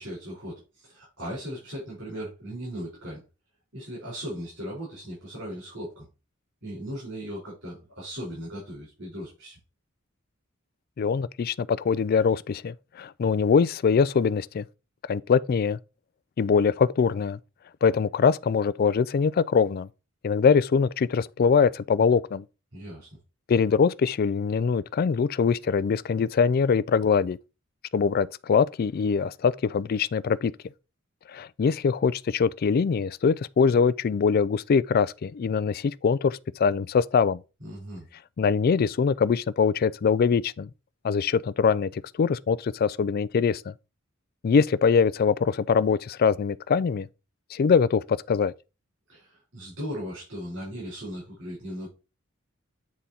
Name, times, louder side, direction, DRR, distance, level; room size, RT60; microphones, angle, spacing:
voice 1, 0.0-3.2 3.7-6.1 6.6-9.6 22.7-23.1 37.6-38.1 49.1-51.9, equal, 70° right, 4.5 m, -37 dB
voice 2, 11.0-14.6 15.1-15.8 16.4-17.4 17.8-19.9 20.2-22.4 23.5-27.4 27.9-30.5 31.3-37.4 38.4-40.7 41.0-43.7 44.4-47.1 47.5-48.5, left 6 dB, 45° left, 0.3 m, -23 dB
8.3 x 3.8 x 4.2 m
head